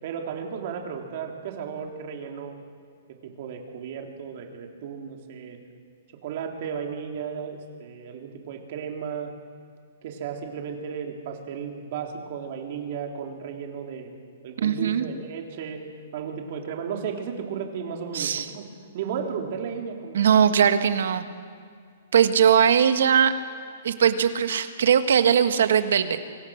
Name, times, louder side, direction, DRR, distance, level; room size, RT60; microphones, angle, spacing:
voice 1, 0.0-2.6 3.1-5.6 6.2-9.3 10.0-14.1 14.4-15.8 16.1-18.6 18.9-20.6 21.0-21.3, right 7 dB, 50° right, 2 dB, 3.7 m, -34 dB
voice 2, 14.6-15.0 18.1-18.5 20.1-21.2 22.1-23.3 23.8-26.2, right 8 dB, 75° right, 9 dB, 1.7 m, -20 dB
26.0 x 23.5 x 6.6 m, 2.2 s
hypercardioid pair, 160°, 0 cm